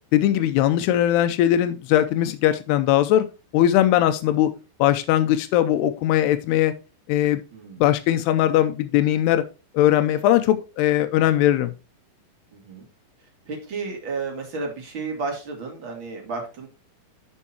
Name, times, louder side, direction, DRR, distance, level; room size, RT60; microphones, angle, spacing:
voice 1, 0.1-3.2 3.5-4.5 4.8-6.7 7.1-7.4 7.8-9.4 9.7-11.7, left 12 dB, 90° left, 9 dB, 2.3 m, -20 dB
voice 2, 7.5-7.8 12.5-12.9 13.4-16.7, right 4 dB, 35° right, 1 dB, 2.7 m, -32 dB
13.0 x 5.5 x 2.8 m, 0.31 s
omnidirectional pair, 5.3 m